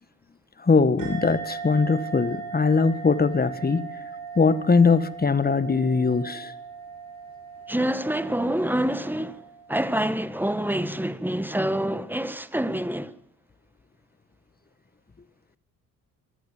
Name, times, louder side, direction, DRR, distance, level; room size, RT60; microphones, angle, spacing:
voice 1, 0.6-4.1 4.3-6.5, left 4 dB, 20° left, 1.6 m, -21 dB
sound 1, 1.0-10.0, right 6 dB, 50° right, 6.0 m, -39 dB
voice 2, 7.7-9.4 9.7-13.1, right 1 dB, 5° right, 1.5 m, -26 dB
25.5 x 18.0 x 7.4 m
figure-of-eight pair, 50°, 44 cm